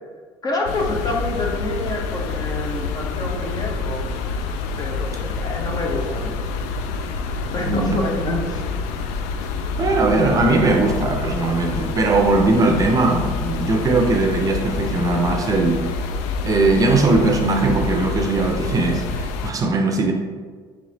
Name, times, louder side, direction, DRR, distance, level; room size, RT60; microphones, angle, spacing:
voice 1, 0.4-4.1 4.8-6.3 7.5-8.7, left 2 dB, 35° left, 1 dB, 0.8 m, -27 dB
sound 1, 0.7-19.5, left 4 dB, 80° left, 0.4 m, -27 dB
voice 2, 7.7-8.0 9.8-15.8 16.4-20.1, right 3 dB, 30° right, 3 dB, 0.5 m, -19 dB
3.2 x 3.1 x 3.9 m, 1.5 s
supercardioid pair, 95°, 11 cm